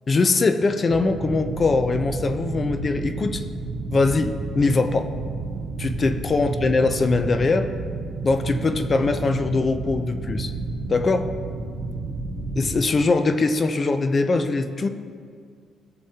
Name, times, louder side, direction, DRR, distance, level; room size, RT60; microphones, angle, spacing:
voice 1, 0.1-3.4 3.9-5.1 5.8-7.7 8.2-10.5 10.9-11.3 12.6-14.9, left 3 dB, 40° left, 9 dB, 0.6 m, -22 dB
sound 1, 0.9-12.8, right 3 dB, 80° right, 1.2 m, -31 dB
15.0 x 7.0 x 2.8 m, 2.1 s
cardioid pair, 90°, 0 cm